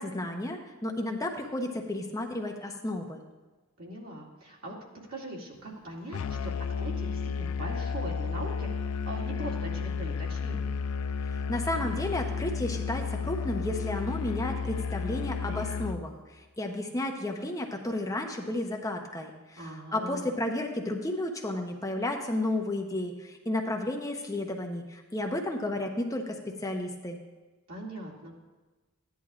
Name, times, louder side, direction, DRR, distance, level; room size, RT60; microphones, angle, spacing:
voice 1, 0.0-3.2 11.3-26.4 26.6-27.2, left 1 dB, 15° left, 2 dB, 0.7 m, -32 dB
voice 2, 3.8-4.8 5.1-10.8 19.6-20.3 27.7-28.3, right 1 dB, 80° right, -4 dB, 2.4 m, -41 dB
Musical instrument, 6.1-16.1, left 5 dB, 80° left, 0.4 m, -32 dB
14.5 x 10.5 x 2.4 m, 1.2 s
head